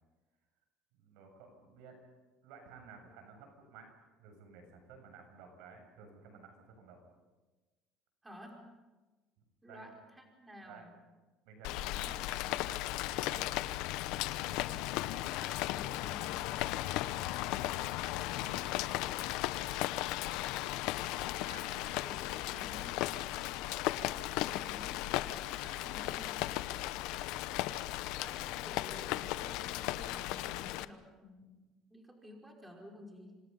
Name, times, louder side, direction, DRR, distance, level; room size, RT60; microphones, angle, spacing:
voice 1, 1.0-2.0 2.4-3.9 4.2-7.0 9.7-10.0 10.6-10.8 11.4-12.1 13.0-13.5 18.1-18.7 21.1-21.9, right 5 dB, 80° right, 5 dB, 7.4 m, -55 dB
voice 2, 8.2-8.7 9.6-10.9 11.6-12.7 15.2-17.9 22.0-23.1 23.9-25.1 25.6-26.7 28.1-33.4, left 1 dB, 10° right, 0 dB, 5.5 m, -53 dB
Rain, 11.6-30.8, left 16 dB, 75° left, 0.9 m, -36 dB
27.5 x 26.0 x 5.6 m, 1.2 s
cardioid pair, 110°, 0 cm